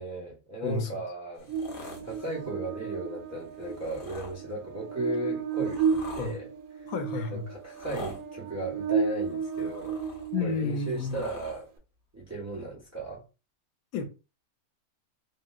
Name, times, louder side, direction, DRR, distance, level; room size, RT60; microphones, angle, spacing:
voice 1, 0.0-1.5 2.1-6.5 6.8-6.9 7.3-10.0 10.4-11.7 12.1-13.2, right 2 dB, 15° right, 0.6 m, -36 dB
sound 1, 1.4-2.5 3.6-4.4 5.1-6.4 7.6-8.2 9.2-10.3 10.7-11.6 12.6-12.7, left 2 dB, 45° left, 0.8 m, -45 dB
Buzz, 1.5-10.9, right 6 dB, 85° right, 1.1 m, -33 dB
voice 2, 6.9-7.5 10.3-11.2 13.9-14.0, left 4 dB, 80° left, 1.1 m, -31 dB
2.9 x 2.8 x 2.3 m
omnidirectional pair, 1.5 m